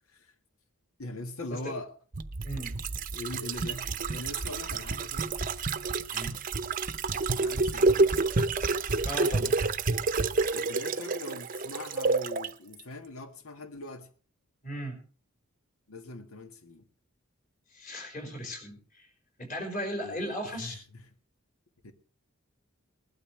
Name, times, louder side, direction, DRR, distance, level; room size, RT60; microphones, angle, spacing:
voice 1, 1.0-1.9 3.1-5.3 7.4-8.2 10.5-14.1 15.9-16.9 20.0-21.0 21.8-21.9, left 2 dB, 85° left, 1.6 m, -41 dB
sound 1, 2.1-12.5 12.8-12.9, right 3 dB, 40° right, 0.7 m, -29 dB
voice 2, 2.4-2.7 6.1-6.3 9.0-9.6 14.6-15.0 17.7-19.1 19.4-20.8, equal, 40° left, 5.3 m, -36 dB
20.0 x 12.5 x 3.3 m
head